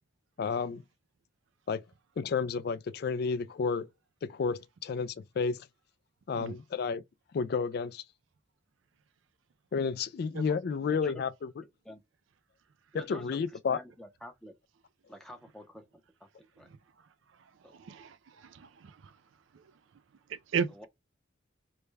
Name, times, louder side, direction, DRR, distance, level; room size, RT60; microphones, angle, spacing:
voice 1, 0.4-0.8 1.7-1.8 2.2-3.9 4.2-5.7 6.3-7.0 7.3-8.0 9.7-11.5 13.1-13.8, left 5 dB, 55° left, 0.3 m, -31 dB
voice 2, 10.8-11.2 11.8-12.0 12.9-14.5 15.1-15.8 16.2-16.3 16.6-16.7 17.6-17.7 20.7-20.9, equal, ahead, 0.6 m, -48 dB
voice 3, 17.8-19.1 20.3-20.9, right 6 dB, 75° right, 0.4 m, -35 dB
3.2 x 2.2 x 3.2 m
head